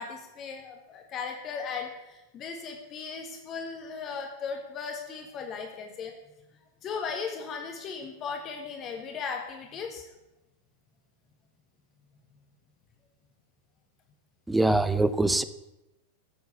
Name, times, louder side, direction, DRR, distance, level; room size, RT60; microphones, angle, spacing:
voice 1, 0.0-6.1 6.8-10.0, left 5 dB, 30° left, 1.7 m, -37 dB
voice 2, 14.5-15.4, right 2 dB, 5° right, 0.8 m, -23 dB
13.0 x 7.9 x 8.4 m
figure-of-eight pair, 90°, 0 cm